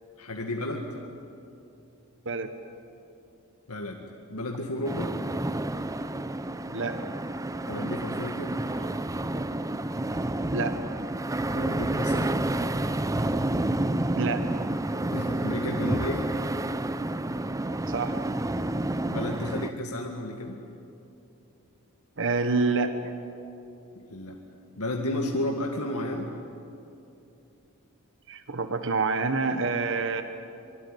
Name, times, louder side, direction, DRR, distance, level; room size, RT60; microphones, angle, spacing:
voice 1, 0.2-1.0 3.7-5.1 7.6-8.5 11.5-12.3 15.1-16.3 19.1-20.6 24.1-24.4 24.8-26.3, left 1 dB, 80° left, 1 dB, 2.1 m, -32 dB
sound 1, 4.8-19.7, right 1 dB, 15° right, 0.6 m, -29 dB
voice 2, 6.7-7.0 8.8-8.9 10.5-10.8 14.1-14.4 17.8-18.2 22.2-23.0 28.3-30.2, right 4 dB, 60° right, 8 dB, 1.3 m, -27 dB
25.0 x 24.5 x 9.4 m, 2.7 s
head